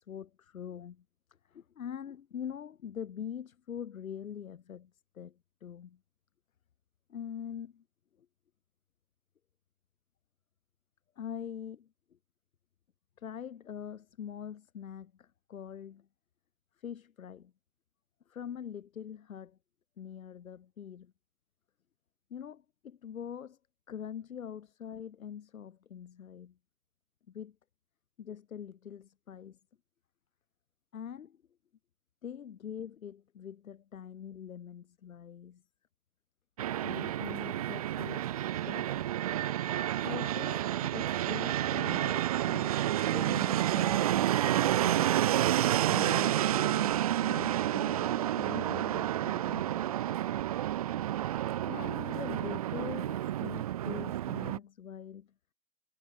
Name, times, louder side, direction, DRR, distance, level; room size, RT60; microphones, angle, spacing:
voice 1, 0.1-1.0 1.5-6.0 7.1-7.8 11.2-11.9 13.2-16.1 16.8-17.5 18.3-19.6 20.0-21.1 22.3-23.6 23.9-26.6 27.3-27.6 28.2-29.6 30.9-31.4 32.2-35.6 36.8-38.3 38.7-38.9 40.0-45.2 45.9-50.1 51.7-55.3, left 8 dB, 70° left, 3.8 m, -44 dB
Fixed-wing aircraft airplane, 36.6-54.6, right 12 dB, 30° right, 0.4 m, -30 dB
hypercardioid pair, 125°, 43 cm